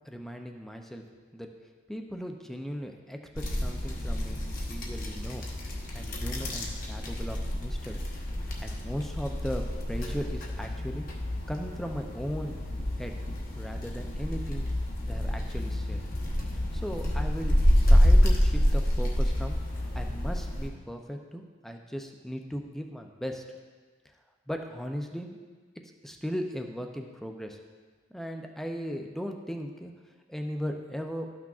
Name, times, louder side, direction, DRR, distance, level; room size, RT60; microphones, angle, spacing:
voice 1, 0.1-1.0 1.3-1.5 1.9-4.4 4.7-5.5 5.9-8.1 8.4-11.0 11.5-12.6 13.0-13.2 13.5-14.7 15.0-16.0 16.7-17.6 17.9-19.6 19.9-23.4 24.5-25.4 26.0-27.6 28.1-29.9 30.3-31.3, equal, ahead, 3 dB, 0.5 m, -37 dB
sound 1, 3.4-20.7, equal, 45° left, 1.0 m, -28 dB
12.5 x 5.9 x 2.4 m, 1.5 s
head